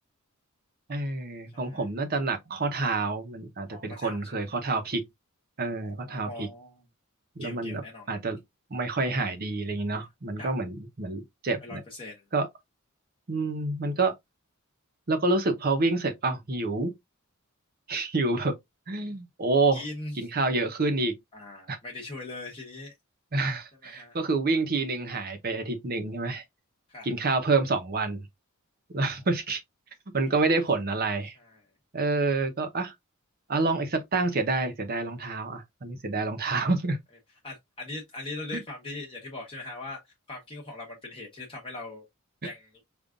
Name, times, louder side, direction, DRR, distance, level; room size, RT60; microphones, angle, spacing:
voice 1, 0.9-5.1 5.6-6.5 7.4-8.4 8.7-11.8 12.3-12.5 13.3-14.1 15.1-17.0 17.9-18.5 18.9-19.8 20.2-21.2 21.7-21.8 23.3-26.4 27.0-28.2 28.9-29.6 30.1-31.3 31.9-32.9 33.5-37.0 38.5-38.6, right 3 dB, 45° right, 0.8 m, -28 dB
voice 2, 1.5-1.9 3.7-4.4 5.8-6.8 7.4-8.1 10.4-10.5 11.6-12.3 19.7-20.2 21.3-22.9 23.8-24.2 26.9-27.1 29.1-29.2 31.4-31.6 37.4-40.0 40.3-42.1 42.4-42.8, left 2 dB, 25° left, 1.0 m, -40 dB
5.2 x 2.4 x 2.4 m
head